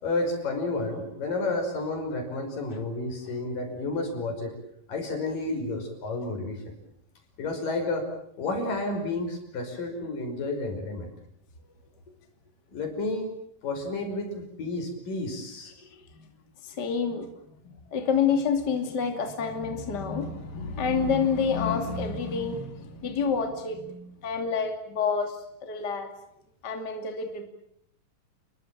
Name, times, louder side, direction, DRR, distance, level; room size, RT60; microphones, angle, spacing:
voice 1, 0.0-4.6 4.9-6.6 7.4-8.1 8.4-11.1 12.7-13.3 13.6-15.7, left 2 dB, 75° left, 4 dB, 7.0 m, -31 dB
voice 2, 15.8-16.3 16.6-17.3 17.6-26.1 26.6-27.5, left 5 dB, 30° left, 5 dB, 3.0 m, -28 dB
30.0 x 22.0 x 7.5 m, 0.72 s
omnidirectional pair, 3.9 m